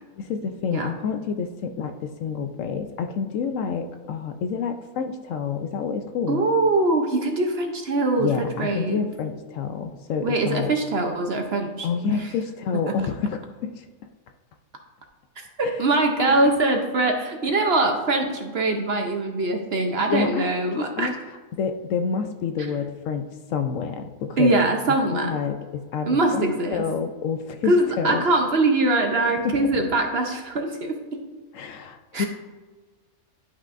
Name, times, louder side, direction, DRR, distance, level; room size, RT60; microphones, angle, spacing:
voice 1, 0.2-6.4 8.2-10.7 11.8-13.9 15.6-15.9 16.3-16.4 20.1-21.1 21.5-24.5 24.9-28.3 29.4-29.6 31.5-32.3, left 6 dB, 70° left, 7 dB, 0.9 m, -28 dB
voice 2, 6.3-9.0 10.2-12.1 15.4-21.1 24.4-25.4 26.1-26.9 27.7-31.2 32.1-32.3, right 2 dB, 55° right, 3 dB, 0.8 m, -23 dB
11.0 x 5.5 x 2.5 m, 1.4 s
omnidirectional pair, 1.5 m